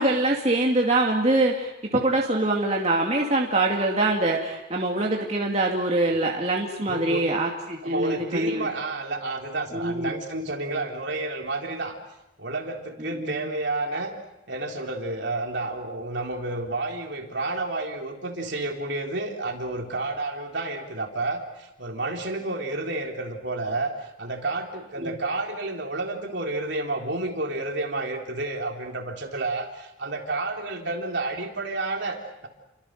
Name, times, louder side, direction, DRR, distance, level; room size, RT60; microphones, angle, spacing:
voice 1, 0.0-8.7 9.7-10.2 13.0-13.5 25.0-25.2, right 2 dB, 35° right, -1 dB, 2.5 m, -24 dB
voice 2, 6.9-7.3 7.8-12.0 12.4-14.2 14.5-32.5, right 2 dB, 60° right, 1 dB, 3.8 m, -30 dB
29.5 x 24.5 x 6.7 m, 0.93 s
head